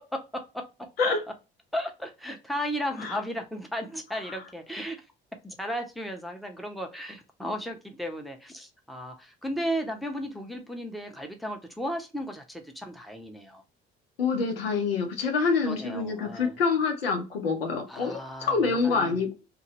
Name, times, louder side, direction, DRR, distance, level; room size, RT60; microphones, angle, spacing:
voice 1, 0.1-0.7 1.7-5.0 5.4-13.6 15.6-16.6 17.9-19.2, equal, ahead, 0.8 m, -35 dB
voice 2, 14.2-19.3, left 4 dB, 90° left, 0.6 m, -26 dB
2.7 x 2.5 x 2.9 m
hypercardioid pair, 50°, 29 cm